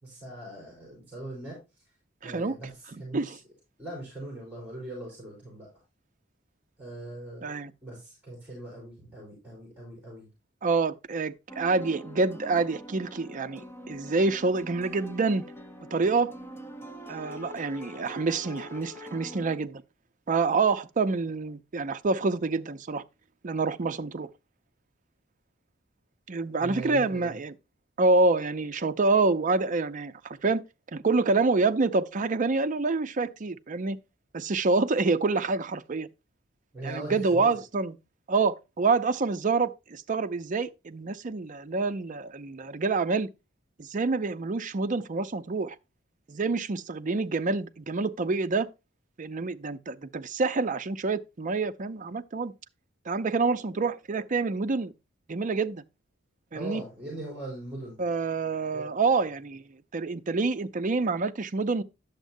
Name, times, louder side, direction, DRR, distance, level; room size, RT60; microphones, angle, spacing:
voice 1, 0.0-1.6 2.2-3.4 3.8-5.7 6.8-7.5 7.8-10.3 26.6-27.3 36.7-37.5 56.5-58.0 58.7-58.9, right 1 dB, 10° right, 3.9 m, -40 dB
voice 2, 2.2-2.6 3.1-3.4 7.4-7.7 10.6-15.5 15.9-16.3 17.1-19.8 20.3-23.0 23.4-24.3 26.3-27.5 28.0-30.6 30.9-34.0 34.3-36.1 36.8-37.9 38.3-43.3 43.8-45.8 46.3-48.7 49.2-52.5 53.1-54.9 55.3-55.8 56.5-56.8 58.0-59.6 59.9-61.8, right 3 dB, 40° right, 0.5 m, -27 dB
sound 1, 11.5-19.6, equal, 10° left, 0.9 m, -44 dB
10.5 x 7.3 x 2.6 m
head